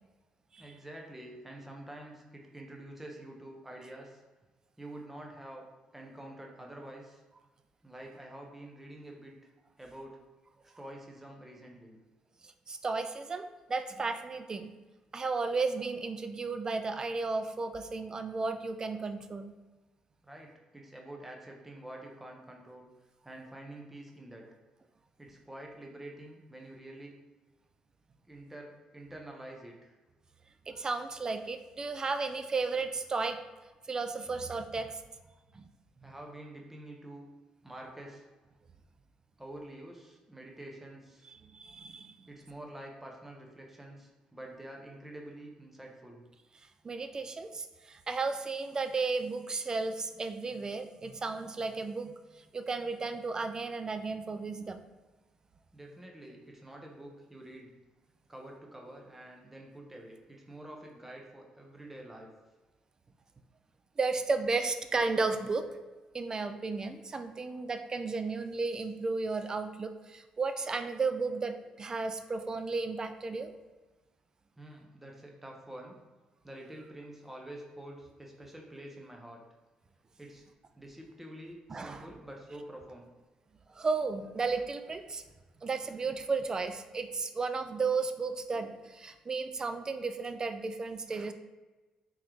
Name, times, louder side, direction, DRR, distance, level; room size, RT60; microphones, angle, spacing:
voice 1, 0.6-4.2 4.8-5.6 5.9-7.2 7.8-9.5 9.8-10.2 10.8-12.0 20.2-22.9 23.2-24.5 25.2-27.1 28.2-30.0 36.0-37.3 37.6-38.3 39.4-41.3 42.3-46.2 55.7-57.7 58.3-62.3 74.6-76.0 76.4-79.4 80.2-80.4 80.7-83.1, right 1 dB, 10° right, 0 dB, 0.7 m, -47 dB
voice 2, 12.7-14.7 15.1-19.5 30.7-33.4 33.9-35.0 35.5-35.6 41.3-42.3 46.8-52.2 52.5-54.8 64.0-65.7 66.1-73.5 81.7-82.0 83.7-85.2 85.6-91.3, right 4 dB, 30° right, 9 dB, 0.3 m, -34 dB
3.6 x 3.1 x 3.0 m, 1.2 s
cardioid pair, 95°, 2 cm